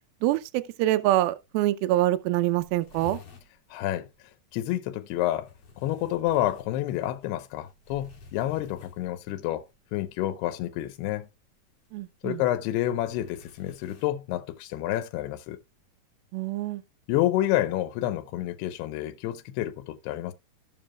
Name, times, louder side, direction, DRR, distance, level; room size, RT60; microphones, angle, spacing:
voice 1, 0.2-3.2 11.9-12.4 16.3-16.8, right 15 dB, 80° right, 2.3 m, -25 dB
sound 1, 1.1-1.2 1.5-1.6 1.9-2.0 2.2-3.5 5.0-9.4 10.7-11.0 11.9-14.1, left 5 dB, 45° left, 2.8 m, -50 dB
voice 2, 3.7-4.1 4.5-5.5 5.8-9.6 9.9-11.3 12.2-15.6 17.1-20.3, left 13 dB, 85° left, 2.8 m, -29 dB
16.5 x 5.5 x 2.3 m
omnidirectional pair, 4.6 m